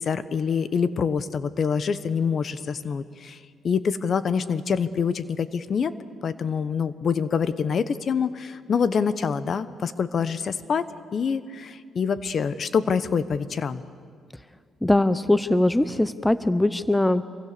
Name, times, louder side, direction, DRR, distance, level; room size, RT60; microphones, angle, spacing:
voice 1, 0.0-3.4 3.6-6.0 6.2-13.8, left 6 dB, 50° left, 14 dB, 1.1 m, -26 dB
voice 2, 14.8-17.3, left 1 dB, 10° left, 14 dB, 0.7 m, -21 dB
26.5 x 23.5 x 6.8 m, 2.1 s
cardioid pair, 90°, 0 cm